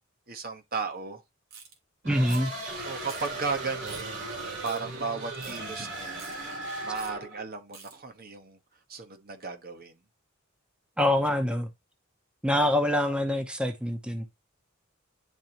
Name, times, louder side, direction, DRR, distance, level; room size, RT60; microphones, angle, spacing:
voice 1, 0.3-1.2 2.8-4.2 4.6-6.3 6.8-8.6 8.9-9.9, right 4 dB, 45° right, 1.2 m, -35 dB
sound 1, 1.5-1.7 2.3-2.6 3.1-3.3 3.9-4.1 4.6-4.8 5.4-5.6 6.1-6.3 7.0-7.1 7.7-7.9, right 6 dB, 80° right, 2.6 m, -46 dB
voice 2, 2.0-2.7 11.0-11.7 12.4-14.3, left 1 dB, 5° right, 0.7 m, -25 dB
sound 2, 2.0-7.4, right 2 dB, 65° right, 3.8 m, -37 dB
10.5 x 4.0 x 2.9 m
head